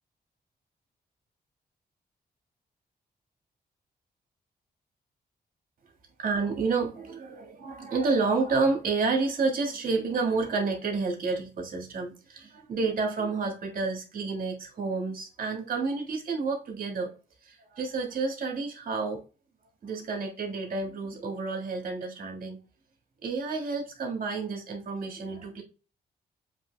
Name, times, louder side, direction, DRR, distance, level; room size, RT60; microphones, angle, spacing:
voice 1, 6.2-17.1 17.4-19.2 19.8-22.6 23.2-25.6, right 4 dB, 60° right, 1.7 m, -30 dB
7.3 x 3.2 x 2.2 m
wide cardioid pair, 160°, 16 cm